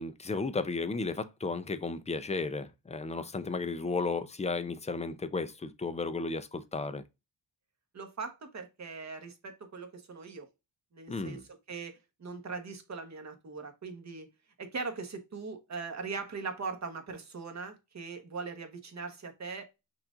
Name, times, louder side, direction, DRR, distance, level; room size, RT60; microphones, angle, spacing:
voice 1, 0.0-7.0 11.1-11.4, left 3 dB, 15° left, 0.4 m, -34 dB
voice 2, 7.9-10.5 10.9-14.3 14.6-19.6, right 4 dB, 40° right, 1.2 m, -40 dB
5.9 x 2.5 x 3.6 m
wide cardioid pair, 125°, 44 cm